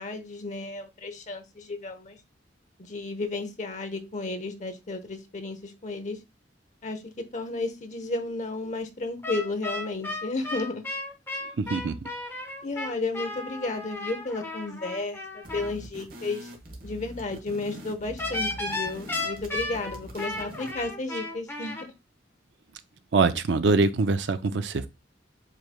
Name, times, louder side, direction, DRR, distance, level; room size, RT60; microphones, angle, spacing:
voice 1, 0.0-2.2 2.8-6.2 6.8-10.8 12.6-16.5 16.8-21.8, left 3 dB, 40° left, 0.8 m, -33 dB
sound 1, 9.2-15.7 18.2-21.8, left 2 dB, 10° left, 1.1 m, -34 dB
voice 2, 11.6-12.1 23.1-24.9, right 3 dB, 70° right, 0.5 m, -24 dB
sound 2, 15.4-20.9, right 1 dB, 50° right, 1.4 m, -44 dB
7.5 x 3.2 x 2.2 m
head